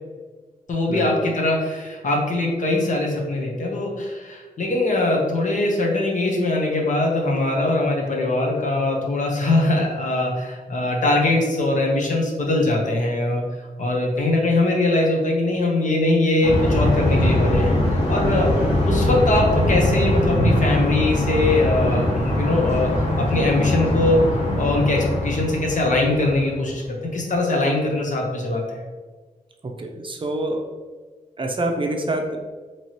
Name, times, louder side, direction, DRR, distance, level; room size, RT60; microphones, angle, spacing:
voice 1, 0.7-13.4 13.8-17.7 18.1-18.5 18.8-22.9 23.2-24.2 24.6-26.8 27.1-28.8, left 2 dB, 60° left, 0 dB, 0.9 m, -21 dB
sound 1, 16.4-26.7, left 1 dB, 40° left, 1.5 m, -21 dB
voice 2, 29.8-30.7 31.4-32.4, right 1 dB, 35° right, 3 dB, 0.5 m, -26 dB
4.5 x 3.0 x 2.9 m, 1.4 s
wide cardioid pair, 120°, 15 cm